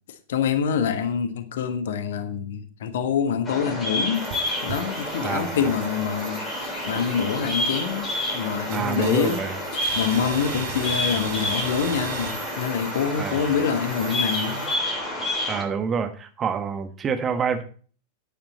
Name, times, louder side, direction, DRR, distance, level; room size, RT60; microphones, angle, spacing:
voice 1, 0.3-4.3 4.6-8.1 8.3-9.4 9.7-14.7, left 7 dB, 60° left, 1.4 m, -26 dB
Bird vocalization bird call bird song, 3.4-15.6, left 1 dB, 20° left, 7.6 m, -29 dB
sound 1, 4.1-14.7, right 7 dB, 50° right, 2.4 m, -38 dB
voice 2, 5.2-5.6 8.7-9.6 13.2-13.5 15.5-17.6, right 6 dB, 25° right, 1.5 m, -27 dB
11.5 x 10.0 x 4.3 m
figure-of-eight pair, 90°, 0 cm